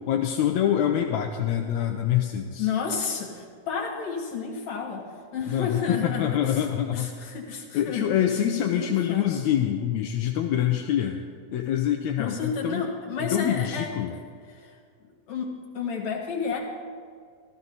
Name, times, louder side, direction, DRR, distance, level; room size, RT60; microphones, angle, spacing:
voice 1, 0.0-2.7 5.5-7.1 7.7-11.2 11.5-12.8 13.2-14.2, left 10 dB, 80° left, 4 dB, 1.7 m, -25 dB
voice 2, 2.6-6.7 6.9-8.2 8.6-9.4 12.2-14.2 14.5-14.7 15.0-16.6, left 5 dB, 60° left, -1 dB, 2.9 m, -31 dB
15.0 x 14.0 x 4.0 m, 2.1 s
omnidirectional pair, 3.7 m